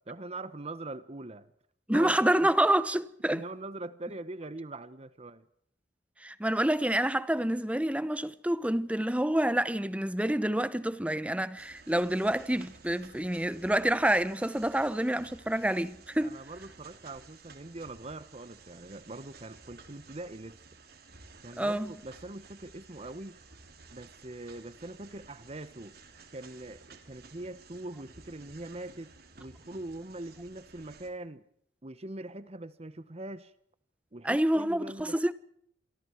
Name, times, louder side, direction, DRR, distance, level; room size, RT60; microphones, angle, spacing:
voice 1, 0.1-1.5 1.9-2.3 3.3-5.5 16.2-20.6 21.4-23.4 23.9-26.0 26.3-31.4 31.8-33.5 34.1-35.2, right 2 dB, 35° right, 1.1 m, -42 dB
voice 2, 1.9-3.4 6.2-16.4 21.6-21.9 34.2-35.3, right 1 dB, 5° right, 0.9 m, -28 dB
sound 1, 11.6-31.1, right 4 dB, 60° right, 3.3 m, -54 dB
27.5 x 24.0 x 4.6 m
head